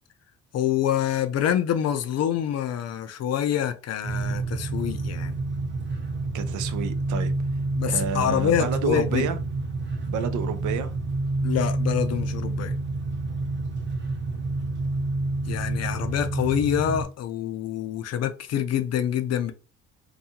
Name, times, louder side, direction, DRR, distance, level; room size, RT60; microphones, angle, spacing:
voice 1, 0.5-5.4 7.8-9.3 11.4-12.7 15.5-19.5, left 10 dB, 60° left, 0.5 m, -26 dB
sound 1, 4.0-17.0, right 2 dB, 35° right, 0.7 m, -28 dB
voice 2, 6.3-7.3 7.8-9.4 10.1-10.9, right 7 dB, 75° right, 0.5 m, -29 dB
2.6 x 2.4 x 2.7 m
cardioid pair, 90°, 30 cm